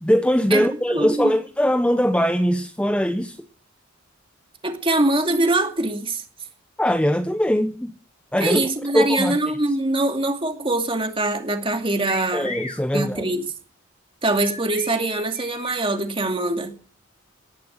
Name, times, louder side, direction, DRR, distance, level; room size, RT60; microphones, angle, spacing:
voice 1, 0.0-3.4 6.8-7.9 8.3-8.6 8.9-9.4 12.3-13.2, equal, 5° left, 0.8 m, -21 dB
voice 2, 0.9-1.4 4.6-6.2 8.4-12.5 12.9-13.4 14.2-16.7, right 2 dB, 25° right, 2.5 m, -23 dB
sound 1, 12.0-12.8 14.4-15.8, left 3 dB, 35° left, 2.4 m, -35 dB
18.0 x 11.5 x 6.5 m
head